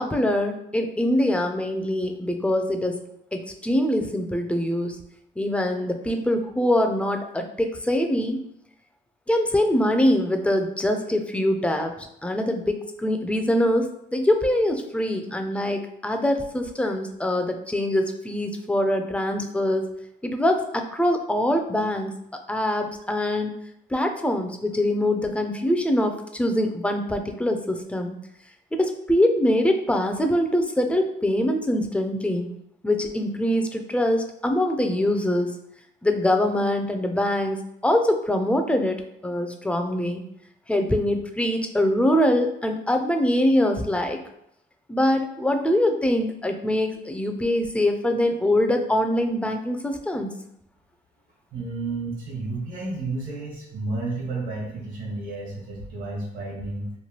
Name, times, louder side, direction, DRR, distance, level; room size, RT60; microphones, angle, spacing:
voice 1, 0.0-3.0 3.3-5.0 5.4-8.4 9.3-19.9 20.2-22.1 22.5-23.5 23.9-28.2 28.7-32.5 32.8-35.6 36.0-40.2 40.7-44.2 44.9-50.3, left 1 dB, 5° left, 5 dB, 0.3 m, -23 dB
voice 2, 51.5-56.9, right 3 dB, 75° right, -3 dB, 1.3 m, -31 dB
3.1 x 2.2 x 2.9 m, 0.76 s
cardioid pair, 90°, 20 cm